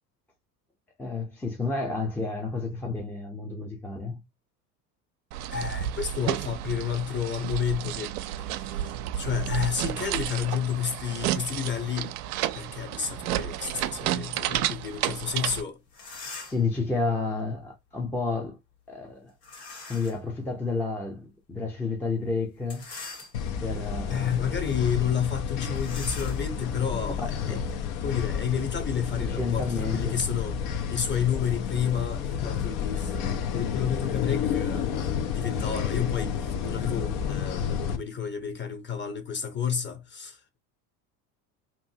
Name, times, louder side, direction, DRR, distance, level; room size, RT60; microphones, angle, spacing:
voice 1, 1.0-4.2 16.5-18.6 18.9-19.3 19.9-22.9 23.6-24.4 27.3-27.7 29.2-30.2, left 4 dB, 5° left, 0.6 m, -30 dB
sound 1, 5.3-15.6, right 12 dB, 65° right, 0.5 m, -31 dB
voice 2, 5.5-8.1 8.4-12.1 12.5-15.8 24.1-27.6 28.0-30.6 30.9-40.6, left 8 dB, 20° left, 0.9 m, -31 dB
sound 2, 15.5-15.6 15.9-16.7 19.4-20.3 20.8-20.9 22.6-23.7 24.3-24.5 24.7-24.9 25.7-28.2, left 4 dB, 75° left, 1.6 m, -43 dB
sound 3, 23.3-38.0, left 7 dB, 55° left, 0.8 m, -30 dB
2.7 x 2.6 x 2.7 m
hypercardioid pair, 70°, 49 cm